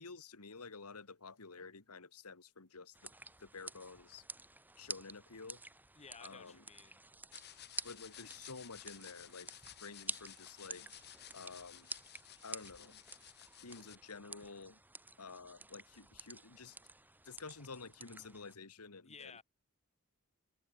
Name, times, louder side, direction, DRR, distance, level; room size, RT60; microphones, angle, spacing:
voice 1, 0.0-3.1 3.4-4.2 4.8-5.6 6.2-6.6 7.8-10.9 11.3-11.9 12.4-13.0 13.6-14.8 15.2-16.8 17.3-19.4, left 4 dB, 90° left, 1.8 m, -51 dB
sound 1, 2.9-18.6, right 2 dB, 10° right, 2.7 m, -50 dB
voice 2, 5.9-7.0 19.0-19.4, left 5 dB, 30° left, 1.7 m, -54 dB
sound 2, 7.3-13.9, left 11 dB, 50° left, 2.0 m, -55 dB
head